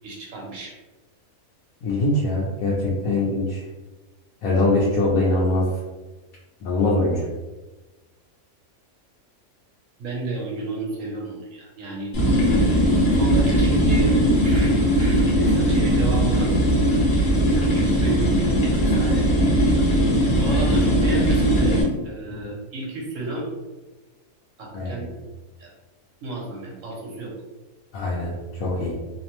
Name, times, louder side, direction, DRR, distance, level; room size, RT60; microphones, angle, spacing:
voice 1, 0.0-0.7 3.0-3.2 10.0-12.1 13.1-14.1 14.4-14.7 15.0-16.5 17.7-18.4 18.8-19.3 20.4-23.5 24.6-25.1 25.6-25.7 26.2-27.3, right 2 dB, 70° right, -2 dB, 1.1 m, -32 dB
voice 2, 1.8-3.6 4.4-5.7 6.6-7.3 22.3-22.4 24.7-25.0 27.9-28.3 28.6-28.9, left 2 dB, 85° left, -5 dB, 1.1 m, -22 dB
sound 1, 12.1-21.8, equal, 70° left, 1.2 m, -19 dB
2.9 x 2.1 x 2.9 m, 1.2 s
omnidirectional pair, 1.4 m